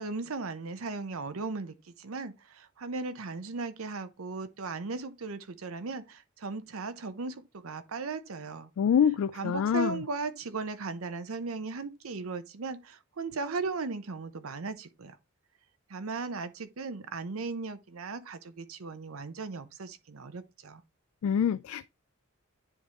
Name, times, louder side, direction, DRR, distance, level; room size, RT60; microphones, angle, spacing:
voice 1, 0.0-8.7 9.3-15.2 15.9-20.8, right 4 dB, 85° right, 0.7 m, -37 dB
voice 2, 8.8-10.0 21.2-21.9, left 8 dB, 80° left, 0.3 m, -26 dB
10.0 x 3.6 x 3.0 m
head